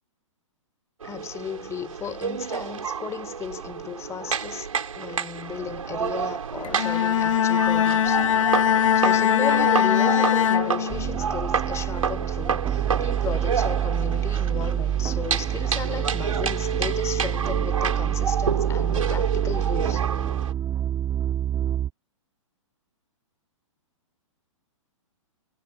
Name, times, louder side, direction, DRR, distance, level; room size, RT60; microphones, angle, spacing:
voice 1, 1.0-4.7 5.0-8.5 8.9-20.1, left 8 dB, 15° left, 3.5 m, -35 dB
sound 1, 1.0-20.5, right 6 dB, 85° right, 3.4 m, -30 dB
Bowed string instrument, 6.6-11.3, left 9 dB, 70° left, 1.8 m, -21 dB
sound 2, 10.9-21.9, right 11 dB, 20° right, 1.7 m, -27 dB
hypercardioid pair, 135°, 17 cm